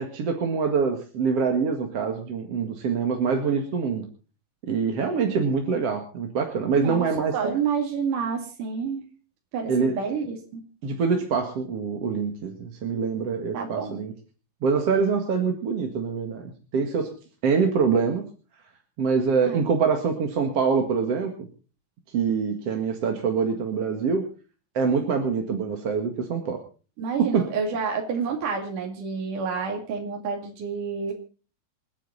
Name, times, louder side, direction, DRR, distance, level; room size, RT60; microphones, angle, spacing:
voice 1, 0.0-4.1 4.7-7.6 9.7-9.9 10.8-14.1 14.6-17.1 17.4-18.2 19.0-21.5 22.1-24.2 24.7-26.6 27.3-27.4, right 5 dB, 50° right, 3 dB, 2.7 m, -25 dB
voice 2, 6.8-7.1 7.3-9.0 9.5-10.6 13.5-13.9 19.4-19.6 27.0-31.1, right 6 dB, 70° right, 2 dB, 3.9 m, -29 dB
28.0 x 10.0 x 4.1 m, 0.37 s
omnidirectional pair, 3.9 m